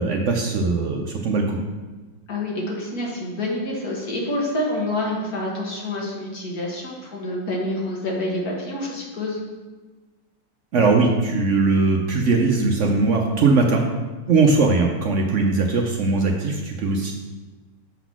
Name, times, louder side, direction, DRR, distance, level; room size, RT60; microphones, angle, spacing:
voice 1, 0.0-1.6 10.7-13.8 14.3-17.1, right 3 dB, 70° right, 1 dB, 0.7 m, -20 dB
voice 2, 2.3-9.4, left 1 dB, 55° left, -2 dB, 1.8 m, -27 dB
7.2 x 4.0 x 5.9 m, 1.3 s
omnidirectional pair, 2.1 m